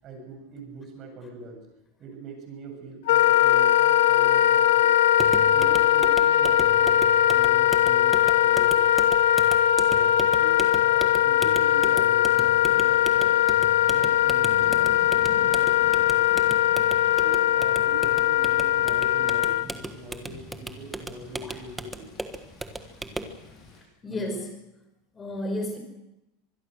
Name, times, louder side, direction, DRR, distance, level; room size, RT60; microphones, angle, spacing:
voice 1, 0.0-1.7 2.0-4.9 5.5-9.1 9.8-13.4 13.8-16.4 17.0-22.1 23.3-23.4 24.1-24.4, right 2 dB, 30° right, 4 dB, 7.7 m, -42 dB
Wind instrument woodwind instrument, 3.1-19.7, left 12 dB, 80° left, 0.9 m, -20 dB
sound 1, 5.1-23.4, right 2 dB, 5° right, 1.5 m, -37 dB
sound 2, 12.4-23.8, left 4 dB, 30° left, 7.6 m, -47 dB
voice 2, 24.0-24.5 25.1-25.8, left 1 dB, 15° left, 5 dB, 5.4 m, -32 dB
25.0 x 21.0 x 6.5 m, 0.94 s
supercardioid pair, 160°, 0 cm